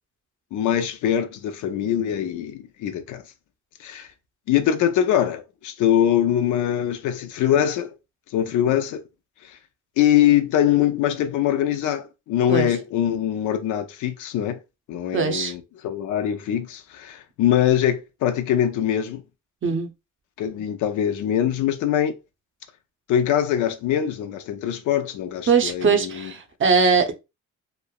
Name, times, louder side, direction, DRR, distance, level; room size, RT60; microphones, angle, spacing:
voice 1, 0.5-3.2 3.8-4.1 4.5-7.9 8.3-9.0 10.0-14.6 14.9-19.2 20.4-22.1 23.1-26.3, left 10 dB, 80° left, 0.5 m, -23 dB
voice 2, 15.1-15.5 19.6-19.9 25.5-27.1, right 5 dB, 40° right, 0.6 m, -20 dB
3.1 x 2.0 x 2.3 m
cardioid pair, 90°, 30 cm